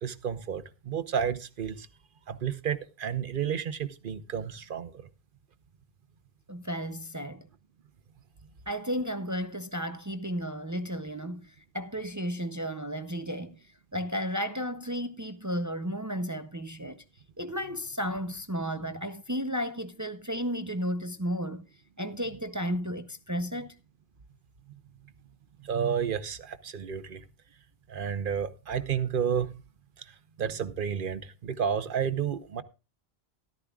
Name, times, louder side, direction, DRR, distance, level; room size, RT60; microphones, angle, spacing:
voice 1, 0.0-1.9 2.3-5.1 25.6-27.2 27.9-29.5 30.4-32.6, right 7 dB, 55° right, 0.9 m, -31 dB
voice 2, 6.5-7.5 8.7-13.6 13.9-17.0 17.4-21.6 22.0-23.8, equal, 20° right, 0.5 m, -33 dB
13.5 x 13.0 x 2.4 m
omnidirectional pair, 1.1 m